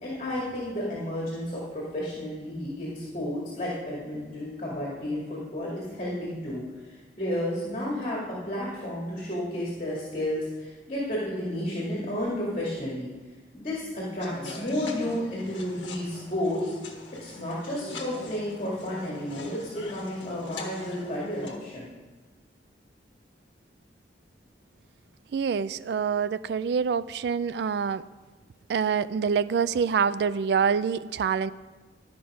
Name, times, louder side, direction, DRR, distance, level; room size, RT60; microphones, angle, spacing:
voice 1, 0.0-13.1 13.5-16.7 17.2-21.9, left 1 dB, 35° left, -6 dB, 2.3 m, -32 dB
sound 1, 14.2-21.6, left 2 dB, 90° left, 1.5 m, -42 dB
voice 2, 25.3-28.0 28.7-31.5, right 6 dB, 65° right, 16 dB, 0.3 m, -26 dB
12.0 x 6.0 x 5.0 m, 1.3 s
head